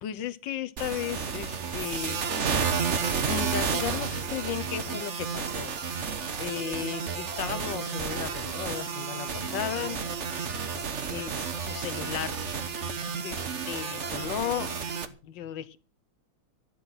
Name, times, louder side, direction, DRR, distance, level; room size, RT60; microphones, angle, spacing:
voice 1, 0.0-2.2 3.2-5.7 6.4-10.1 11.1-12.4 13.2-14.7 15.2-15.8, left 10 dB, 65° left, 15 dB, 1.5 m, -35 dB
sound 1, 0.8-15.1, right 6 dB, 40° right, 1.2 m, -31 dB
14.5 x 11.0 x 5.9 m, 0.36 s
omnidirectional pair, 2.3 m